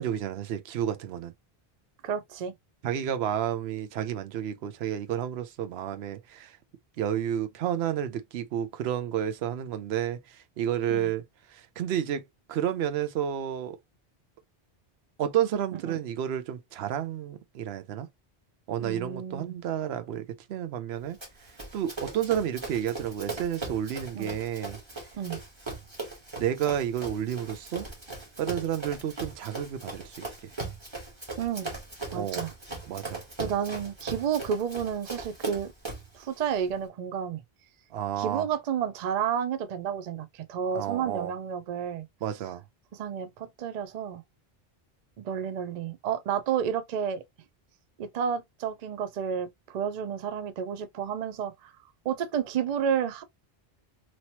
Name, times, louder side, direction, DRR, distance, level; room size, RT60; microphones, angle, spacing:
voice 1, 0.0-1.3 2.8-6.5 7.0-11.2 11.5-12.2 12.5-13.8 15.2-18.1 18.7-21.2 21.7-24.8 26.4-27.9 28.4-30.5 32.1-32.5 32.9-33.2 37.9-38.5 40.7-41.3 42.2-42.6, right 10 dB, 90° right, 0.8 m, -31 dB
voice 2, 2.0-2.5 10.9-11.1 15.7-16.0 18.8-19.5 24.1-24.3 25.1-25.4 31.4-31.7 32.1-32.5 33.4-35.7 36.1-37.4 38.2-42.1 42.9-44.2 45.2-47.2 48.0-51.7 52.0-53.2, right 8 dB, 55° right, 0.5 m, -31 dB
Run, 21.2-36.1, right 3 dB, 30° right, 1.4 m, -39 dB
3.0 x 2.9 x 2.8 m
omnidirectional pair, 1.0 m